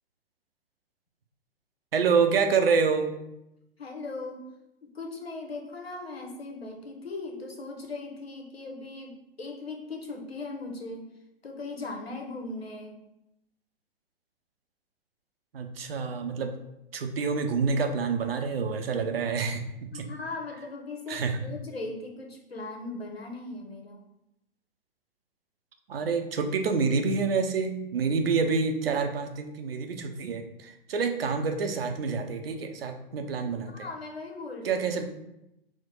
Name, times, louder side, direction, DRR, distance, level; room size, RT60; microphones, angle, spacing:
voice 1, 1.9-3.1 15.5-16.5 16.9-19.6 19.9-20.1 21.1-21.4 25.9-33.9 34.6-35.0, right 5 dB, 70° right, 6 dB, 0.6 m, -27 dB
voice 2, 3.8-4.4 4.8-11.1 11.4-12.9 19.9-24.0 33.6-34.8, left 3 dB, 85° left, 2 dB, 0.9 m, -38 dB
4.3 x 2.2 x 4.3 m, 0.87 s
figure-of-eight pair, 110°, 30 cm